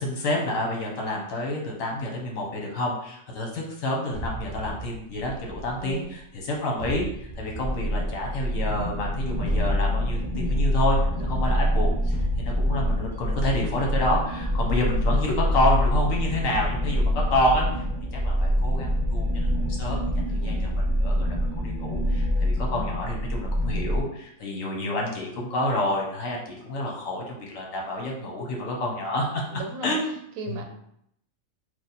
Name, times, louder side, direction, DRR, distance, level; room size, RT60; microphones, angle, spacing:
voice 1, 0.0-17.8 18.1-20.0 20.3-30.1 30.5-30.6, left 1 dB, 75° left, -1 dB, 1.3 m, -29 dB
sound 1, 4.1-6.3 6.8-8.6 9.3-14.4, right 1 dB, 40° left, 0.9 m, -38 dB
voice 2, 5.8-6.2 11.1-11.6 20.3-20.9 29.5-29.9 30.4-30.6, right 3 dB, 85° right, 4 dB, 1.1 m, -38 dB
sound 2, 7.6-24.0, equal, 40° right, 0.5 m, -25 dB
3.2 x 2.2 x 4.1 m, 0.72 s
omnidirectional pair, 1.4 m